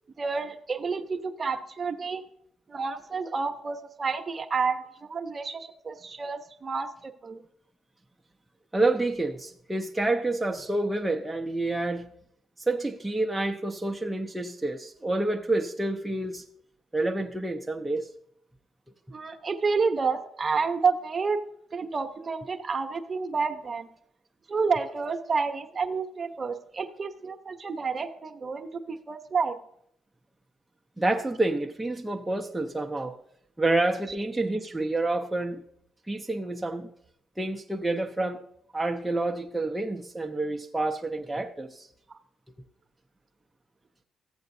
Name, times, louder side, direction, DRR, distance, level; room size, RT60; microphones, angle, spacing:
voice 1, 0.2-2.2 2.7-7.4 19.1-21.4 21.7-23.9 24.5-29.6, right 5 dB, 35° right, 6 dB, 0.8 m, -29 dB
voice 2, 8.7-12.1 12.6-16.4 16.9-18.1 31.0-33.2 33.6-35.6 36.1-36.9 37.4-38.4 38.7-41.9, right 2 dB, 10° right, 1 dB, 0.5 m, -28 dB
14.5 x 7.8 x 2.7 m, 0.70 s
cardioid pair, 90°, 0 cm